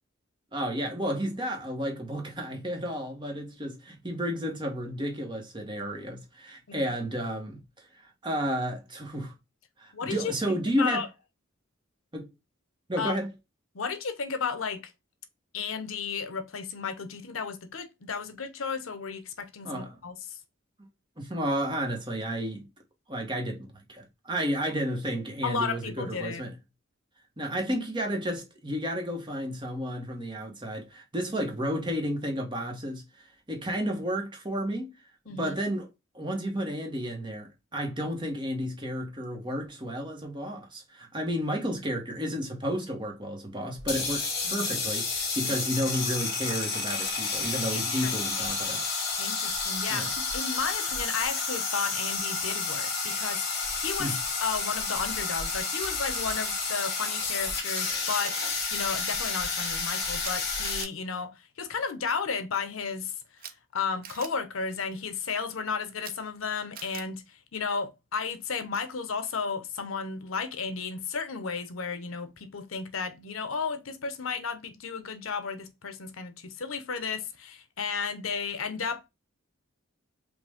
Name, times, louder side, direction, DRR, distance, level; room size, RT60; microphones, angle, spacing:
voice 1, 0.5-7.6 8.2-9.3 9.8-11.0 12.1-12.3 12.9-13.3 19.6-20.0 21.2-22.7 23.1-26.5 27.4-34.9 35.3-35.9 36.1-48.9 49.9-50.1 54.0-54.2, equal, 25° right, 1.2 m, -32 dB
voice 2, 9.9-11.1 13.0-13.2 13.7-14.8 15.5-20.4 25.4-26.4 35.3-35.5 44.4-44.7 45.4-45.5 47.7-48.6 49.2-50.1 50.3-63.1 63.7-79.1, left 5 dB, 85° left, 0.8 m, -33 dB
sound 1, 43.8-60.8, left 4 dB, 50° left, 2.2 m, -30 dB
Camera, 55.8-56.3 57.7-57.8 58.1-58.3 60.2-60.3 60.6-60.9 63.4-63.5 64.0-64.3 66.0-66.1 66.7-67.0, right 8 dB, 45° right, 0.6 m, -42 dB
5.3 x 2.6 x 3.5 m
head